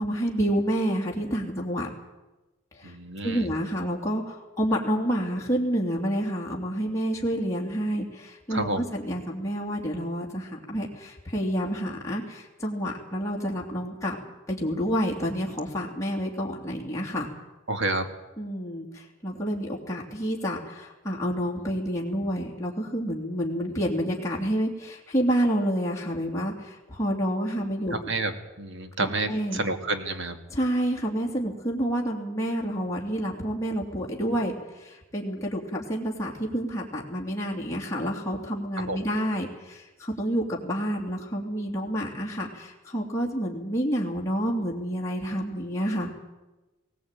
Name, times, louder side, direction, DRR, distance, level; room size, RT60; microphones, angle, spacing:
voice 1, 0.0-1.9 2.7-2.9 3.2-14.2 14.5-17.3 18.4-28.0 29.0-29.6 30.5-46.1, equal, 15° left, -2 dB, 2.8 m, -29 dB
voice 2, 2.8-3.5 8.5-8.8 17.7-18.1 27.9-30.4 38.9-39.0, right 2 dB, 60° right, 7 dB, 2.1 m, -29 dB
19.5 x 17.5 x 9.1 m, 1.1 s
head